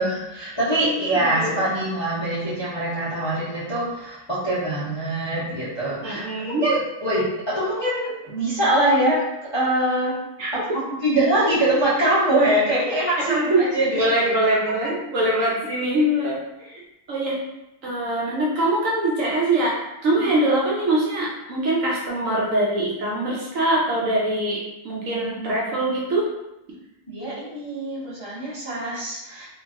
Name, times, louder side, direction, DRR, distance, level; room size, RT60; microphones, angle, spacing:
voice 1, 0.0-9.2 9.5-10.2 10.5-14.1 20.2-20.3 27.1-29.5, right 1 dB, 35° left, -11 dB, 0.4 m, -23 dB
voice 2, 0.8-1.6 6.0-6.6 10.4-10.8 13.2-13.7 13.9-16.8 17.1-17.4 17.8-26.3, right 1 dB, 65° right, -4 dB, 0.9 m, -23 dB
2.8 x 2.5 x 2.5 m, 0.93 s
omnidirectional pair, 1.7 m